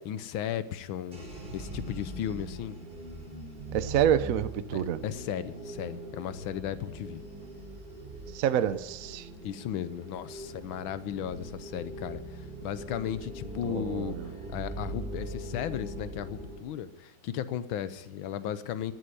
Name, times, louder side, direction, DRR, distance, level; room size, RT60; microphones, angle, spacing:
voice 1, 0.1-1.3 1.5-2.8 4.7-7.2 9.4-18.9, left 10 dB, 85° left, 14 dB, 1.6 m, -35 dB
sound 1, 1.1-16.6, right 2 dB, 25° right, 3.5 m, -41 dB
voice 2, 3.7-5.0 8.3-9.3 13.6-14.3, right 9 dB, 60° right, 13 dB, 0.9 m, -28 dB
15.0 x 9.0 x 9.7 m, 1.1 s
omnidirectional pair, 2.1 m